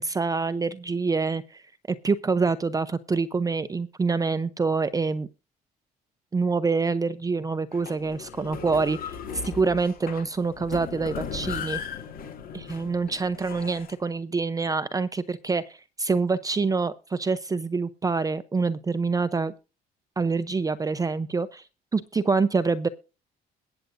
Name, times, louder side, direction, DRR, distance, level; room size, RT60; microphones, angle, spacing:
voice 1, 0.0-1.6 1.9-5.3 6.3-9.2 9.4-11.8 12.5-19.5 20.2-21.7 21.9-22.9, right 4 dB, 20° right, 12 dB, 0.7 m, -26 dB
sound 1, 7.7-13.9, left 7 dB, 60° left, 2.4 m, -37 dB
22.0 x 7.9 x 2.6 m, 0.31 s
cardioid pair, 110°, 17 cm